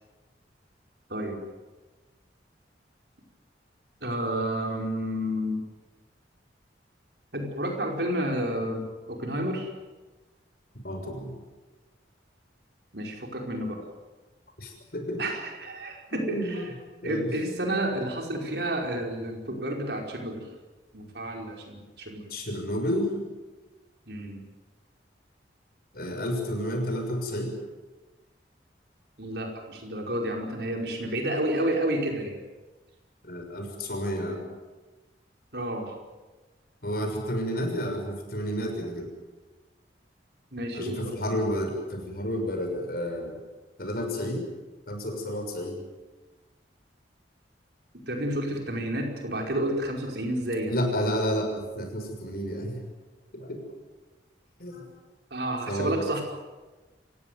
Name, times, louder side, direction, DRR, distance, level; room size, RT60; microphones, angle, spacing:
voice 1, 4.0-5.6 7.3-9.7 12.9-13.9 15.2-16.6 17.0-20.5 20.9-22.3 24.1-24.4 29.2-32.4 35.5-35.9 40.5-41.1 48.1-50.7 55.3-56.2, right 1 dB, 65° right, 2 dB, 5.0 m, -30 dB
voice 2, 10.8-11.3 14.6-15.2 16.1-16.6 17.0-17.3 22.3-23.1 25.9-27.5 33.2-34.4 36.8-39.1 40.7-43.4 43.8-44.4 44.9-45.8 50.7-52.8 53.3-53.6 54.6-54.9 55.7-56.0, equal, 55° left, 3 dB, 6.4 m, -30 dB
28.0 x 16.0 x 9.4 m, 1.2 s
head